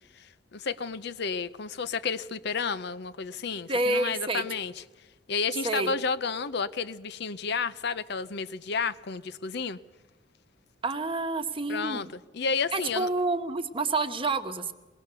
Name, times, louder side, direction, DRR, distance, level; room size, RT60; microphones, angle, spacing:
voice 1, 0.1-4.8 5.3-9.8 11.7-13.1, left 5 dB, 65° left, 0.7 m, -31 dB
voice 2, 3.7-4.4 5.6-6.0 10.8-12.0 12.7-14.7, right 3 dB, 30° right, 1.1 m, -28 dB
21.5 x 18.5 x 6.8 m
head